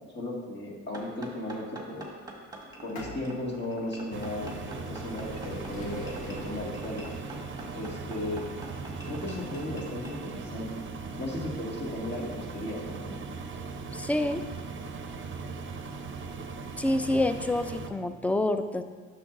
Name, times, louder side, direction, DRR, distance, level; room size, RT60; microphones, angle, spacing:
voice 1, 0.1-2.2 2.8-7.0 7.8-8.4 9.0-10.7 11.2-13.2, left 1 dB, 35° left, -3 dB, 2.1 m, -36 dB
sound 1, 0.9-10.2, right 2 dB, 15° right, 1.7 m, -45 dB
sound 2, 2.6-14.3 15.1-15.2 16.1-16.2 16.4-16.5, left 2 dB, 70° left, 1.3 m, -46 dB
Engine, 4.1-17.9, right 4 dB, 40° right, 0.7 m, -39 dB
voice 2, 13.9-14.4 16.8-18.8, left 1 dB, 5° left, 9 dB, 0.4 m, -27 dB
9.9 x 6.8 x 2.6 m, 1.5 s
cardioid pair, 90°, 30 cm